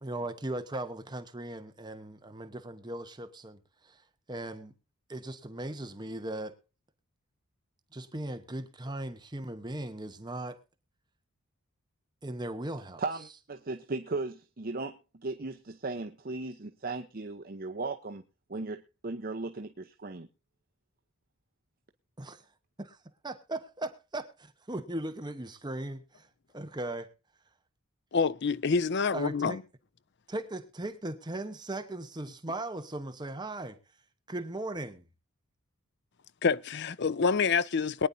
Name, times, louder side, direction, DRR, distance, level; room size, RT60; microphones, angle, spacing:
voice 1, 0.0-4.0 4.3-4.7 5.1-6.5 7.9-10.6 12.2-13.0 22.2-22.4 22.8-23.0 23.2-26.3 26.5-27.1 29.1-29.6 30.3-33.8 34.3-35.0, right 1 dB, 20° right, 1.0 m, -38 dB
voice 2, 13.0-18.2 18.5-20.3, right 3 dB, 40° right, 0.8 m, -37 dB
voice 3, 28.1-29.6 36.4-38.1, left 5 dB, 50° left, 0.6 m, -27 dB
22.5 x 9.9 x 2.7 m
head